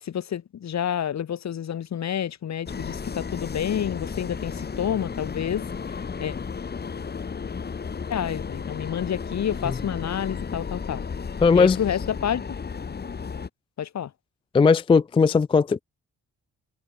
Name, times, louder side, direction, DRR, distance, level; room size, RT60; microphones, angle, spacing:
voice 1, 0.0-6.4 8.1-11.0 11.5-12.6 13.8-14.1, left 9 dB, 65° left, 2.2 m, -29 dB
sound 1, 2.7-13.5, left 5 dB, 35° left, 1.3 m, -33 dB
voice 2, 11.4-11.8 14.5-15.8, left 5 dB, 20° left, 0.3 m, -18 dB
cardioid pair, 80°, 30 cm